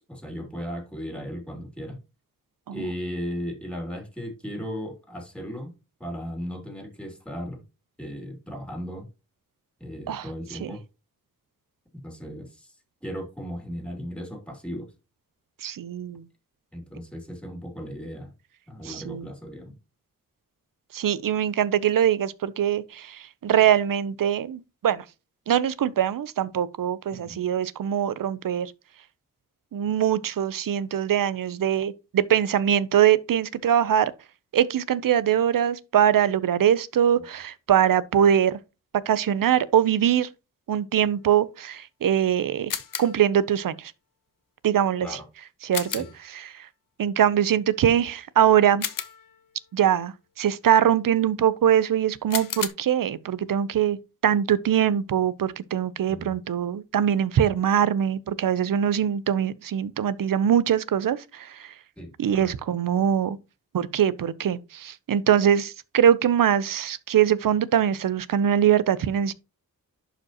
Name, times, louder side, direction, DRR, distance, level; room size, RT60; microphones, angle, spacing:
voice 1, 0.0-2.0 2.7-5.7 6.0-7.6 8.0-9.1 9.8-10.8 11.9-12.7 13.0-14.9 16.7-18.3 18.7-19.7 27.1-27.4 45.0-45.3 45.9-46.1 56.1-56.3 62.0-62.5, equal, 5° left, 2.7 m, -36 dB
voice 2, 15.6-16.2 18.8-19.3 20.9-25.0 25.5-28.7 29.7-34.1 34.5-38.6 38.9-40.3 40.7-42.7 43.0-43.9 44.6-45.2 45.6-46.0 46.3-46.7 47.0-48.9 49.7-54.0 54.2-61.7 62.2-63.4 63.7-69.3, right 9 dB, 75° right, 0.7 m, -22 dB
sound 1, 42.7-43.3 45.7-46.3 48.8-49.5 52.3-52.7, left 8 dB, 75° left, 1.0 m, -32 dB
11.0 x 5.0 x 2.9 m
wide cardioid pair, 100°, 33 cm